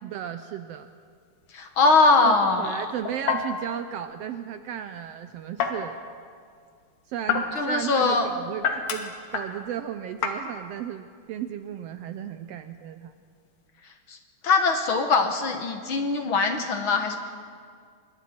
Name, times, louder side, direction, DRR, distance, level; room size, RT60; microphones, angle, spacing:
voice 1, 0.0-0.9 2.2-6.0 7.1-13.1, right 9 dB, 80° right, 9 dB, 1.4 m, -34 dB
sound 1, 0.7-13.7, left 6 dB, 90° left, 3.0 m, -34 dB
voice 2, 1.5-2.8 7.5-8.3 14.1-14.2 14.4-17.2, left 3 dB, 55° left, 5 dB, 1.5 m, -22 dB
26.5 x 22.5 x 4.4 m, 2.1 s
omnidirectional pair, 3.5 m